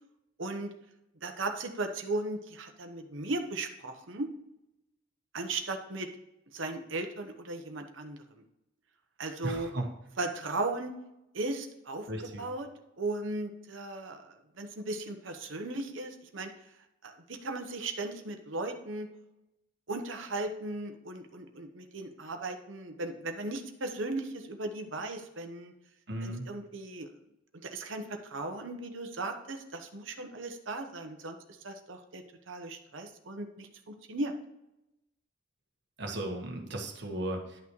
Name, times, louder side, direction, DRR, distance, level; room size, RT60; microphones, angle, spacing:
voice 1, 0.4-0.7 1.2-4.3 5.3-6.1 6.5-8.2 9.2-9.7 10.2-10.9 11.3-12.1 12.4-12.7 13.0-16.5 17.0-19.1 19.9-25.7 26.2-27.1 27.6-31.4 31.6-34.3, right 2 dB, 75° right, 5 dB, 1.0 m, -37 dB
voice 2, 9.4-9.9 12.1-12.4 26.1-26.5 36.0-37.6, right 1 dB, 60° right, 2 dB, 1.5 m, -36 dB
11.0 x 6.0 x 3.1 m, 0.92 s
head